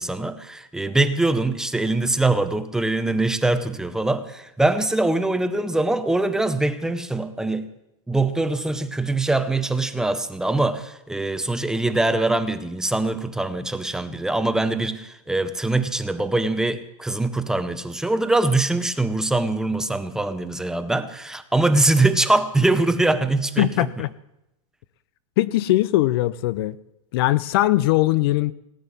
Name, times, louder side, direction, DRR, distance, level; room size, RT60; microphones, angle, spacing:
voice 1, 0.0-7.7 8.1-23.9, right 2 dB, 5° right, 10 dB, 0.7 m, -23 dB
voice 2, 23.6-24.1 25.4-26.8 27.1-28.5, left 16 dB, 45° left, 18 dB, 0.5 m, -20 dB
18.0 x 7.9 x 9.7 m, 0.87 s
supercardioid pair, 160°, 17 cm